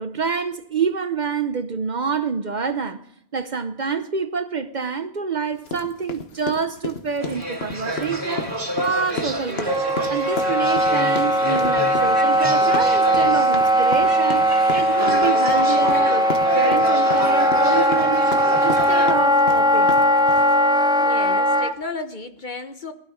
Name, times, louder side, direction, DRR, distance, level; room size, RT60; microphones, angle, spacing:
voice 1, 0.0-8.5 8.8-9.7 10.1-14.5 14.7-20.0, right 5 dB, 50° right, 0.8 m, -27 dB
sound 1, 5.7-20.5, left 4 dB, 70° left, 1.5 m, -33 dB
sound 2, 7.2-19.1, equal, 80° right, 2.9 m, -29 dB
Wind instrument woodwind instrument, 9.7-21.7, equal, 5° right, 0.4 m, -19 dB
voice 2, 21.0-22.9, left 3 dB, 50° left, 1.2 m, -33 dB
19.0 x 12.5 x 5.0 m
omnidirectional pair, 1.1 m